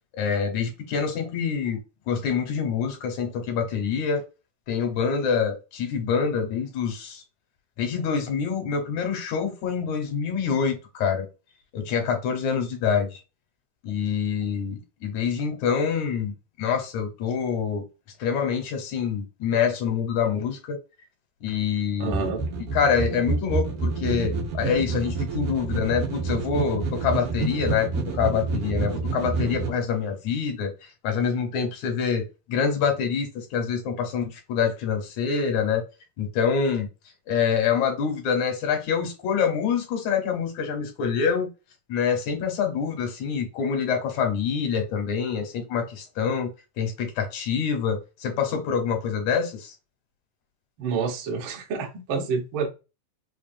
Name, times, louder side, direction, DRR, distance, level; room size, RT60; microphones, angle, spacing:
voice 1, 0.1-1.8 2.1-4.2 4.7-7.2 7.8-11.3 11.7-13.2 13.8-17.8 18.2-20.8 21.4-22.2 22.7-30.7 31.0-35.8 36.2-36.9 37.3-41.5 41.9-46.5 46.8-49.7, left 6 dB, 70° left, 2.2 m, -26 dB
voice 2, 22.0-22.4 50.8-52.7, right 5 dB, 70° right, 1.2 m, -28 dB
sound 1, 22.1-29.7, right 4 dB, 85° right, 2.7 m, -28 dB
5.6 x 2.4 x 2.6 m
omnidirectional pair, 3.6 m